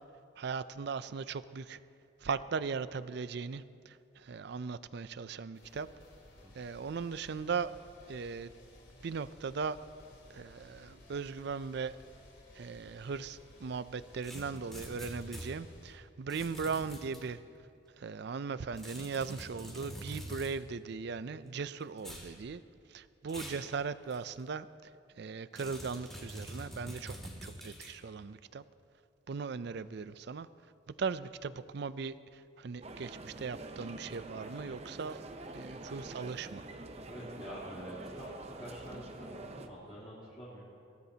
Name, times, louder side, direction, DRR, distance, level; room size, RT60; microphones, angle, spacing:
voice 1, 0.4-1.8 2.2-5.9 6.5-7.7 8.1-8.5 9.0-9.8 10.3-12.0 12.5-17.4 18.0-22.6 22.9-24.9 25.2-27.1 27.4-28.6 29.3-30.5 30.9-35.2 35.5-36.7, right 5 dB, 55° right, 15 dB, 0.4 m, -38 dB
sound 1, 5.5-16.0, left 1 dB, 65° left, 3.9 m, -57 dB
sound 2, 14.2-15.5 16.3-17.2 18.8-20.5 22.0-22.3 23.3-23.7 24.1-24.2 25.6-27.9, equal, ahead, 2.5 m, -45 dB
sound 3, 32.8-39.7, right 2 dB, 30° right, 0.7 m, -46 dB
voice 2, 37.1-38.3 38.6-40.6, equal, 20° left, -11 dB, 3.7 m, -47 dB
21.5 x 17.0 x 2.8 m, 2.5 s
head